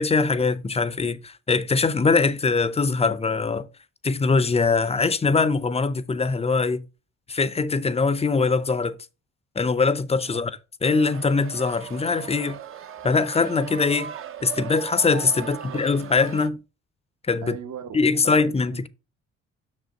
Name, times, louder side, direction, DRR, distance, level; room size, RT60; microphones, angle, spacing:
voice 1, 0.0-3.7 4.0-6.8 7.3-9.0 9.6-10.5 10.8-12.6 13.0-14.1 14.4-16.6 17.3-17.5 17.9-18.9, left 4 dB, 20° left, 0.5 m, -22 dB
sound 1, 10.8-16.5, right 9 dB, 45° right, 0.6 m, -38 dB
voice 2, 15.3-15.8 17.4-18.9, right 7 dB, 65° right, 1.2 m, -39 dB
6.1 x 5.2 x 3.8 m
cardioid pair, 90°, 30 cm